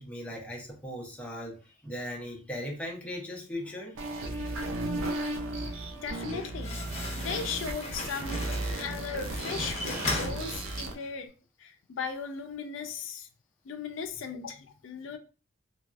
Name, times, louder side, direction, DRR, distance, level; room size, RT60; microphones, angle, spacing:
voice 1, 0.0-4.0, left 1 dB, 5° left, 0.6 m, -38 dB
sound 1, 4.0-10.9, right 2 dB, 85° right, 0.5 m, -35 dB
voice 2, 5.5-6.8 7.2-11.3 11.6-13.3 13.7-15.2, left 6 dB, 70° left, 0.4 m, -37 dB
Slam, 6.0-11.1, left 2 dB, 35° left, 0.9 m, -37 dB
3.4 x 2.3 x 2.4 m
head